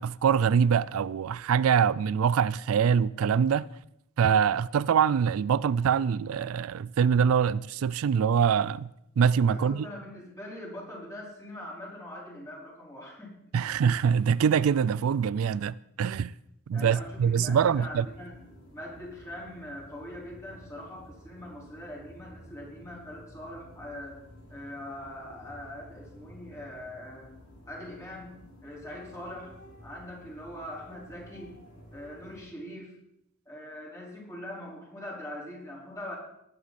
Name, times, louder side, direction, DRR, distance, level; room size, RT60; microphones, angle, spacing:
voice 1, 0.0-3.7 4.2-8.9 9.2-9.9 13.5-16.3 16.7-18.0, right 7 dB, 85° right, 0.4 m, -24 dB
voice 2, 9.5-13.3 16.7-18.3 18.7-24.2 24.5-27.4 27.7-28.3 28.6-29.5 29.8-31.5 31.9-32.9 33.5-36.2, left 1 dB, 15° left, 4.2 m, -42 dB
sound 1, 16.8-32.4, equal, 90° left, 4.7 m, -52 dB
18.5 x 9.5 x 4.2 m
head